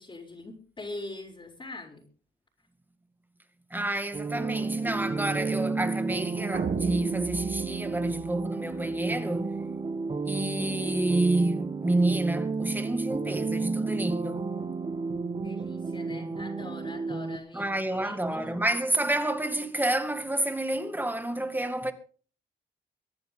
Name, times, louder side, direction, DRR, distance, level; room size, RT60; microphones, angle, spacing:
voice 1, 0.0-2.0 15.3-18.8, left 2 dB, 25° left, 5.4 m, -43 dB
voice 2, 3.7-9.6 10.3-14.4 17.5-21.9, right 1 dB, 10° right, 2.2 m, -29 dB
sound 1, 4.1-17.4, right 4 dB, 25° right, 1.9 m, -32 dB
sound 2, 6.5-9.0, right 6 dB, 50° right, 1.4 m, -34 dB
25.0 x 10.5 x 3.9 m
cardioid pair, 90°, 20 cm